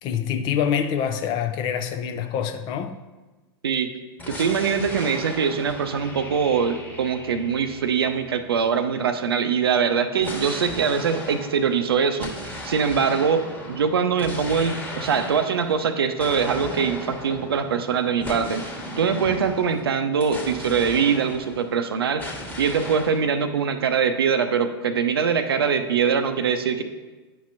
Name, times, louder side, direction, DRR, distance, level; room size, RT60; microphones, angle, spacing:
voice 1, 0.0-3.0, left 8 dB, 35° left, 0.5 m, -25 dB
sound 1, 4.2-8.9 10.2-21.8 22.2-23.3, left 1 dB, 10° left, 1.3 m, -37 dB
voice 2, 4.3-18.7 19.0-26.8, right 6 dB, 65° right, 0.6 m, -23 dB
10.0 x 5.7 x 2.6 m
figure-of-eight pair, 95°, 13 cm